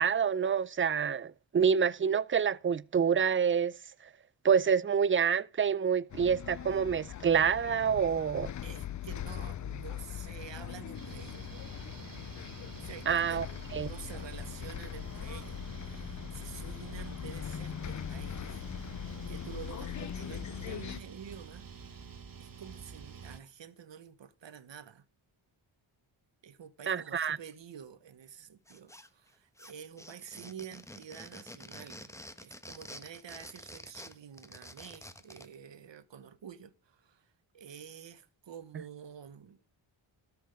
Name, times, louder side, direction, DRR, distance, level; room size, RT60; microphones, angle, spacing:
voice 1, 0.0-3.7 4.4-8.5 13.1-13.5 13.7-13.9 26.9-27.4, right 7 dB, 25° right, 0.4 m, -27 dB
Bus, 6.1-21.0, left 10 dB, 40° left, 0.4 m, -41 dB
voice 2, 8.6-11.5 12.8-18.6 18.9-19.0 19.3-21.6 22.4-25.0 26.4-32.1 32.4-39.8, right 8 dB, 65° right, 1.0 m, -49 dB
sound 1, 10.9-23.4, right 6 dB, 45° right, 1.1 m, -48 dB
sound 2, 28.7-29.3 29.6-35.5, left 1 dB, 5° left, 1.0 m, -48 dB
13.0 x 5.9 x 5.1 m
cardioid pair, 65°, 48 cm